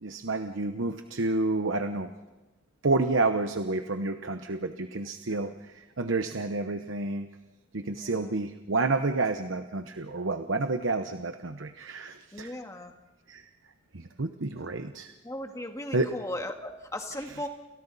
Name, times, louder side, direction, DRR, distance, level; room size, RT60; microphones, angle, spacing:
voice 1, 0.0-2.1 2.8-7.3 7.7-12.5 13.3-13.5 13.9-15.1 15.9-16.1, right 3 dB, 80° right, 8 dB, 1.0 m, -29 dB
voice 2, 7.9-8.4 12.3-12.9 14.5-14.8 15.2-17.5, left 1 dB, 15° left, 4 dB, 2.0 m, -38 dB
29.5 x 29.0 x 4.2 m, 1.2 s
head